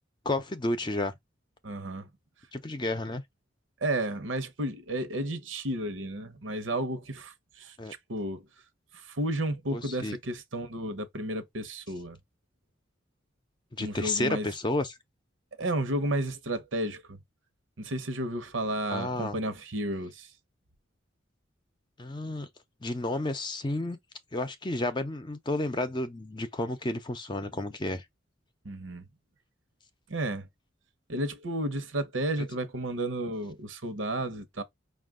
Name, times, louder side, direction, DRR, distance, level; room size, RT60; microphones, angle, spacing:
voice 1, 0.2-1.1 2.5-3.2 7.8-7.9 9.7-10.2 13.7-14.9 18.9-19.4 22.0-22.5 22.8-24.0 24.3-28.0, left 2 dB, 25° left, 0.6 m, -31 dB
voice 2, 1.6-2.1 3.8-7.8 8.1-8.5 8.9-12.2 13.8-14.5 15.6-17.2 17.8-20.3 28.6-29.1 30.1-30.5 31.1-34.6, right 1 dB, 90° right, 0.9 m, -32 dB
5.2 x 2.5 x 3.6 m
head